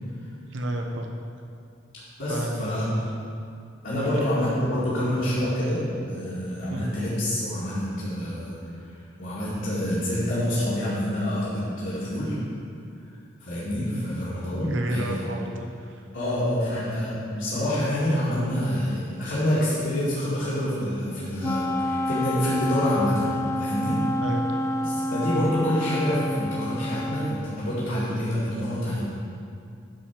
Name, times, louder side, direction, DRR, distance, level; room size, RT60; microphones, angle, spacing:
voice 1, 0.5-1.1 2.3-3.1 3.9-4.2 6.7-6.9 14.6-16.0 24.2-24.5, right 1 dB, 75° right, 2 dB, 0.9 m, -31 dB
voice 2, 2.2-2.8 3.8-8.6 8.8-8.9 9.2-12.4 13.4-15.2 16.1-24.0 24.8-29.0, equal, 70° left, -12 dB, 2.2 m, -27 dB
Wind instrument woodwind instrument, 21.4-27.5, left 1 dB, 15° left, 0.3 m, -28 dB
10.0 x 4.4 x 6.0 m, 2.4 s
head